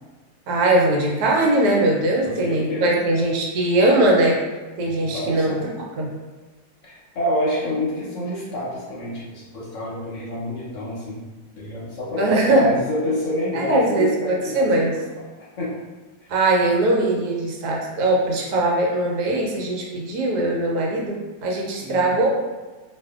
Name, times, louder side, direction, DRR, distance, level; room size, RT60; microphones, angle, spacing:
voice 1, 0.5-4.4 4.8-5.5 6.0-6.1 12.2-12.7 13.5-14.9 16.3-22.3, right 2 dB, 80° right, -2 dB, 1.1 m, -20 dB
voice 2, 2.2-3.0 4.8-5.6 6.8-11.2 11.6-14.7 15.6-15.8 16.2-16.3 21.8-22.2, left 1 dB, 60° left, -6 dB, 0.9 m, -27 dB
2.5 x 2.3 x 2.3 m, 1.3 s
omnidirectional pair, 1.6 m